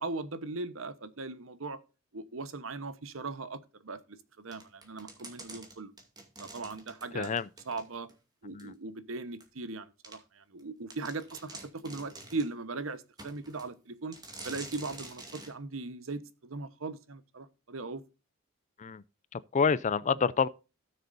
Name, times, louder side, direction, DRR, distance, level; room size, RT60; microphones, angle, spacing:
voice 1, 0.0-1.8 2.1-4.0 4.4-5.9 6.4-7.3 7.6-8.1 8.4-11.6 11.8-14.1 14.4-18.0 20.1-20.2, right 3 dB, 70° right, 1.0 m, -39 dB
sound 1, 4.5-8.2 8.6-8.7 9.4-9.5 10.0-10.2 10.6-10.7 10.9-12.5 13.2-13.7 14.1-15.5, right 2 dB, 20° right, 2.2 m, -47 dB
voice 2, 7.1-7.5 8.5-8.7 18.8-19.0 19.5-20.5, left 5 dB, 35° left, 0.5 m, -27 dB
16.5 x 6.8 x 2.6 m
head